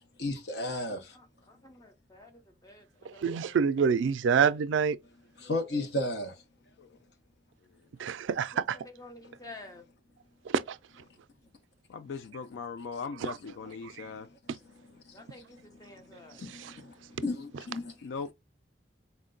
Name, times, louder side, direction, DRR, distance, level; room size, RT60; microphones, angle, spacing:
voice 1, 0.2-1.0 5.4-6.4 15.1-15.2 16.0-16.9 17.2-18.0, left 1 dB, 65° left, 0.7 m, -34 dB
voice 2, 1.1-3.7 8.5-9.9 15.1-16.5, left 2 dB, 20° left, 0.5 m, -51 dB
voice 3, 3.2-5.0 8.0-8.8 10.5-10.8 14.0-14.1 16.6-16.7, right 6 dB, 90° right, 0.3 m, -26 dB
voice 4, 11.9-14.3 18.0-18.3, left 5 dB, 80° left, 0.3 m, -39 dB
4.3 x 2.2 x 3.7 m
head